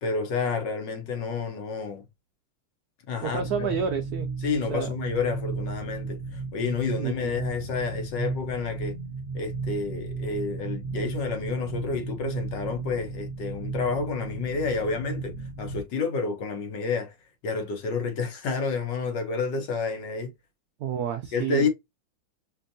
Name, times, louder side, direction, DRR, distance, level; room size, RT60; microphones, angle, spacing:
voice 1, 0.0-2.0 3.1-3.8 4.4-9.0 9.3-17.1 17.4-20.3 21.3-21.7, left 4 dB, 65° left, 1.4 m, -29 dB
sound 1, 3.2-15.8, right 4 dB, 65° right, 1.2 m, -34 dB
voice 2, 3.2-4.3 4.7-4.9 7.0-7.4 20.8-21.7, right 7 dB, 85° right, 0.8 m, -30 dB
5.3 x 2.5 x 2.6 m
omnidirectional pair, 2.3 m